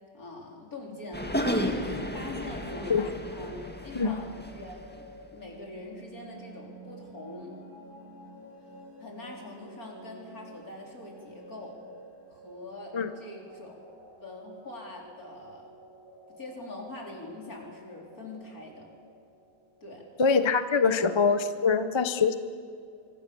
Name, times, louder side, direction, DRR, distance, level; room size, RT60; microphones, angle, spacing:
voice 1, 0.1-1.5 1.8-2.9 3.3-7.5 9.0-11.8 12.3-13.9 14.2-15.7 16.4-18.9 19.8-20.0, left 2 dB, 50° left, -1 dB, 4.7 m, -43 dB
sound 1, 0.9-20.1, right 1 dB, 10° right, 6.3 m, -51 dB
sound 2, 1.1-4.9, equal, 5° left, 1.6 m, -33 dB
voice 2, 20.2-22.3, left 5 dB, 35° left, 10 dB, 0.4 m, -24 dB
25.0 x 24.5 x 7.1 m, 2.4 s
omnidirectional pair, 2.0 m